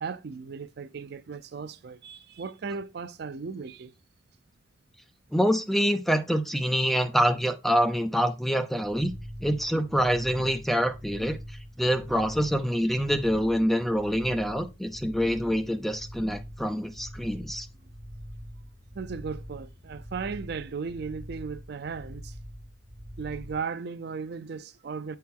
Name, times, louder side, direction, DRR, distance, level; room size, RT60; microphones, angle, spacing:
voice 1, 0.0-3.9 12.1-12.2 18.9-22.4 23.2-25.2, right 5 dB, 55° right, 0.4 m, -36 dB
voice 2, 5.3-9.1 9.4-11.4 11.8-17.7, equal, ahead, 0.6 m, -26 dB
sound 1, 8.8-23.6, equal, 20° left, 1.7 m, -43 dB
8.3 x 4.4 x 3.7 m
head